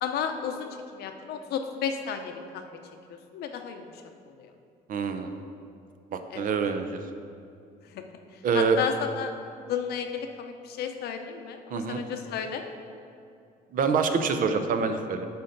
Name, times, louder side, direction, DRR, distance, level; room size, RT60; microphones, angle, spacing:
voice 1, 0.0-2.7 3.3-3.8 4.4-4.5 6.3-6.4 7.9-8.0 8.5-9.3 9.7-12.6, left 7 dB, 70° left, 6 dB, 0.8 m, -32 dB
voice 2, 4.9-5.3 6.1-7.0 8.4-8.8 11.7-12.0 13.7-15.3, right 5 dB, 55° right, 7 dB, 0.7 m, -26 dB
9.2 x 4.4 x 6.6 m, 2.5 s
cardioid pair, 110°, 17 cm